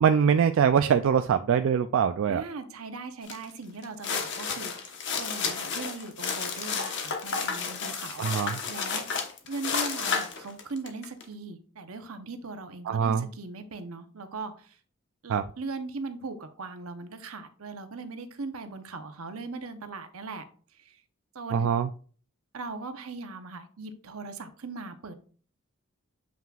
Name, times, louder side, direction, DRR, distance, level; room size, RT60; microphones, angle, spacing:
voice 1, 0.0-2.4 8.2-8.6 12.9-13.3 15.3-15.4 21.5-21.9, right 7 dB, 65° right, 9 dB, 0.3 m, -23 dB
voice 2, 2.3-9.0 9.4-14.8 15.2-20.4 20.8-21.0 21.3-21.7 22.5-25.1, right 3 dB, 85° right, 8 dB, 0.8 m, -39 dB
sound 1, 3.3-3.4 3.8-11.2, left 5 dB, 60° left, 1.1 m, -32 dB
7.4 x 5.8 x 2.4 m, 0.43 s
head